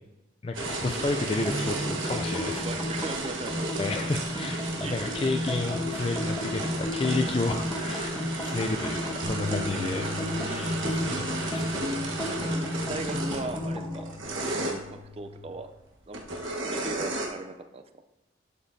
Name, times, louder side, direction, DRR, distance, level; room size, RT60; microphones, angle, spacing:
voice 1, 0.4-2.6 3.8-8.1 8.4-10.0 10.4-11.9, left 3 dB, 30° left, 5 dB, 0.4 m, -31 dB
sound 1, 0.5-14.7 16.1-17.3, right 2 dB, 85° right, 1.3 m, -34 dB
sound 2, 1.4-14.1, left 1 dB, 10° left, 1.0 m, -33 dB
voice 2, 2.4-3.6 4.8-5.2 9.7-10.0 12.2-15.7 16.1-16.2 16.6-17.8, right 3 dB, 30° right, 8 dB, 0.5 m, -39 dB
sound 3, 9.2-15.5, left 3 dB, 70° right, 1.2 m, -42 dB
11.5 x 6.9 x 2.7 m, 1.0 s
head